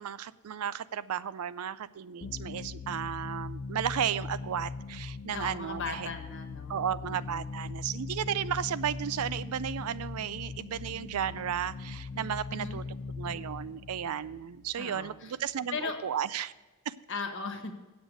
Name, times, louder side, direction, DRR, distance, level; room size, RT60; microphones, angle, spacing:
voice 1, 0.0-6.1 6.7-12.8 13.2-16.5 16.9-17.0, right 9 dB, 85° right, 16 dB, 0.4 m, -34 dB
sound 1, 2.2-15.5, left 4 dB, 45° left, 0.4 m, -40 dB
voice 2, 5.3-7.5 12.5-12.8 14.8-15.3 15.7-16.0 17.1-17.7, left 4 dB, 60° left, 5 dB, 1.3 m, -38 dB
8.0 x 7.9 x 6.3 m, 1.2 s
head